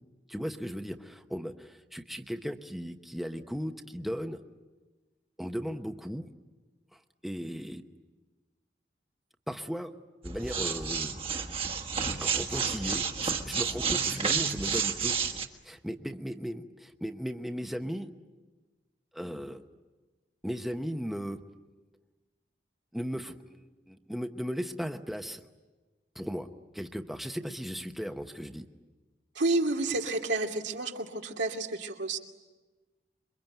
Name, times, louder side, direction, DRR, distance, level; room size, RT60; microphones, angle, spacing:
voice 1, 0.3-4.4 5.4-6.3 6.9-7.8 9.5-9.9 10.2-11.1 12.1-15.2 15.6-18.1 19.1-19.6 20.4-21.4 22.9-25.4 26.1-26.5 26.7-28.7, equal, ahead, 5 dB, 0.9 m, -36 dB
sound 1, 10.2-15.5, right 6 dB, 30° right, 1.5 m, -30 dB
voice 2, 29.3-32.2, right 2 dB, 85° right, 2 dB, 2.6 m, -30 dB
27.5 x 23.5 x 9.2 m, 1.3 s
head